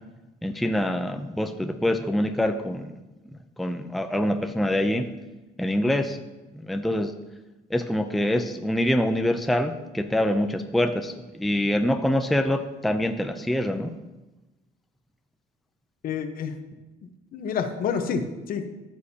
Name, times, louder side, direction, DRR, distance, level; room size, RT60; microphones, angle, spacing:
voice 1, 0.4-2.9 3.6-5.0 5.6-6.2 6.5-7.1 7.7-13.9, left 1 dB, ahead, 6 dB, 0.5 m, -25 dB
voice 2, 16.0-16.5 17.3-18.7, left 6 dB, 60° left, 7 dB, 1.0 m, -28 dB
14.5 x 6.3 x 2.8 m, 1.1 s
cardioid pair, 110°, 17 cm